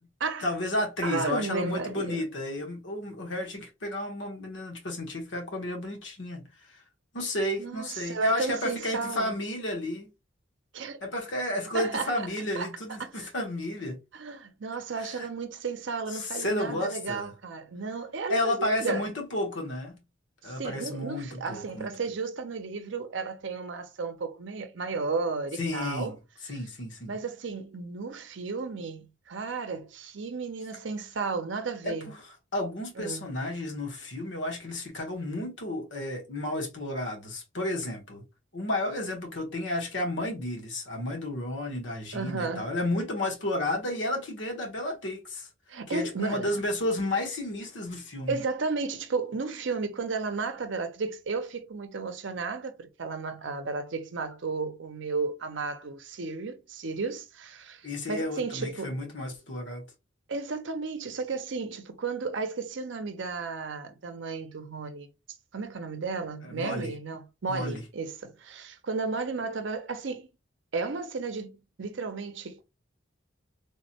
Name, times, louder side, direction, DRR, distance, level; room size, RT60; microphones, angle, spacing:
voice 1, 0.4-6.8 7.1-10.1 11.0-14.0 15.0-15.3 16.1-17.3 18.3-20.0 20.4-21.9 25.5-26.2 26.4-27.2 31.8-38.2 38.5-45.5 45.9-48.4 57.8-59.8 66.4-66.9 67.5-67.8, left 1 dB, 70° left, 1.1 m, -32 dB
voice 2, 1.0-2.2 7.6-9.3 10.7-11.0 11.7-12.1 12.6-12.7 13.0-13.3 14.1-19.0 20.4-26.2 27.1-32.1 33.0-33.3 42.1-42.7 45.7-46.5 48.3-59.0 60.3-65.1 65.5-70.3 70.7-72.6, right 4 dB, 75° right, 0.6 m, -33 dB
3.4 x 2.1 x 2.8 m
head